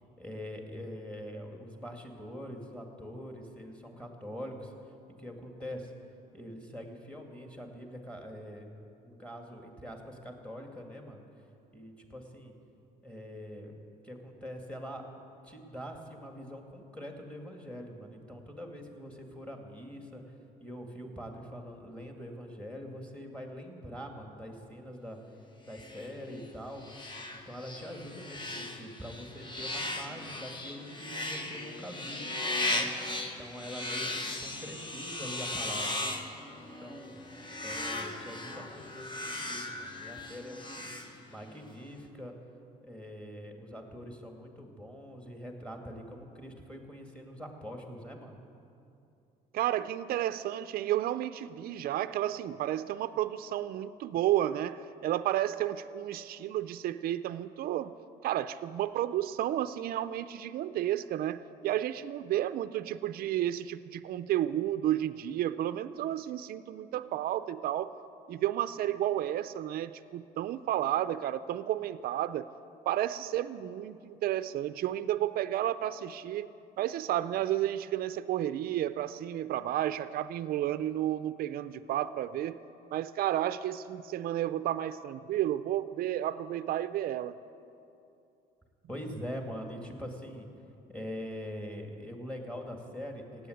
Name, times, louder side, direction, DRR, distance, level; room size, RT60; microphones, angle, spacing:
voice 1, 0.2-4.7 5.2-5.9 6.3-8.7 9.0-11.2 11.7-12.5 13.0-13.7 14.0-15.0 15.4-20.2 20.6-25.2 25.7-26.8 27.3-32.3 32.7-32.9 33.4-36.0 36.6-37.2 37.6-40.9 41.3-42.4 42.8-48.4 88.9-90.5 90.9-93.5, equal, 5° left, 3 dB, 2.3 m, -43 dB
sound 1, 25.7-41.6, left 2 dB, 30° left, 1.4 m, -37 dB
voice 2, 49.5-57.9 58.2-67.9 68.3-72.5 72.8-76.5 76.8-82.6 82.9-87.4, right 12 dB, 60° right, 12 dB, 0.5 m, -32 dB
16.0 x 8.7 x 9.3 m, 2.6 s
cardioid pair, 110°, 17 cm